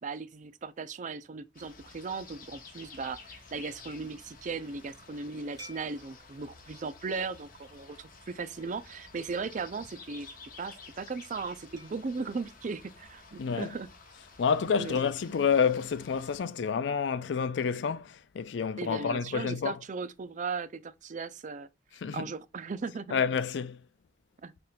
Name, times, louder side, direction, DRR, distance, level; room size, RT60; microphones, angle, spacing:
voice 1, 0.0-10.3 10.6-13.9 14.8-15.0 18.8-21.7 22.1-23.2 24.4-24.5, right 4 dB, 45° right, 0.4 m, -37 dB
sound 1, 1.5-16.4, left 4 dB, 50° left, 1.1 m, -52 dB
sound 2, 5.6-8.3 8.8-9.0 11.8-13.6 15.0-17.2, equal, 25° right, 2.2 m, -57 dB
voice 2, 14.4-19.7 22.0-22.2 23.1-23.8, left 6 dB, 70° left, 0.4 m, -29 dB
5.0 x 4.3 x 2.3 m
head